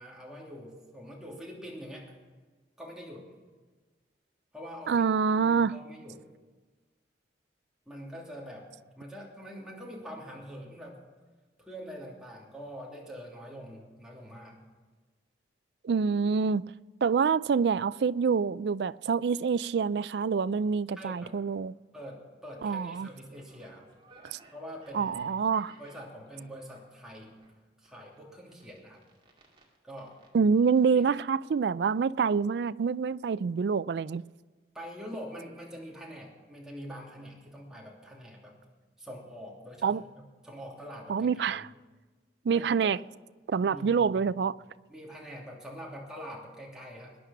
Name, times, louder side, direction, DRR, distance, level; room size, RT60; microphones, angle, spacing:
voice 1, 0.0-2.1 2.8-3.3 4.5-6.2 7.9-8.7 8.9-11.0 11.6-14.6 20.9-21.4 21.9-23.8 24.5-25.4 25.8-27.4 27.8-29.0 29.8-30.1 30.9-31.0 34.7-38.5 39.0-39.9 40.4-41.7 42.5-42.8 43.7-44.3 44.9-47.2, equal, 5° right, 2.9 m, -44 dB
voice 2, 4.9-5.7 15.8-16.6 17.0-21.7 22.6-23.1 24.2-24.4 24.9-25.7 30.3-34.2 39.8-40.0 41.1-41.7 42.4-43.0 43.5-44.6, right 5 dB, 70° right, 0.4 m, -26 dB
sound 1, 22.7-27.5 27.8-30.3 30.6-30.8, right 3 dB, 30° right, 2.3 m, -58 dB
20.5 x 10.0 x 5.9 m
head